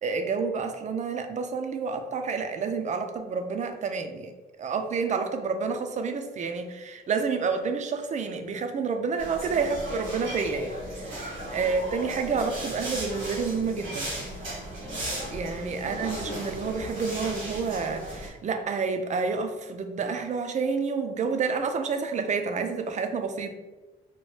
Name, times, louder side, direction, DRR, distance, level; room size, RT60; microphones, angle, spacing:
voice 1, 0.0-4.3 4.6-14.1 15.3-23.5, right 5 dB, 35° right, 6 dB, 0.4 m, -29 dB
sound 1, 9.2-18.3, right 1 dB, 90° right, 1.3 m, -36 dB
sound 2, 11.0-13.9, left 1 dB, 55° left, 0.6 m, -43 dB
2.9 x 2.1 x 3.1 m, 1.2 s
cardioid pair, 90°, 20 cm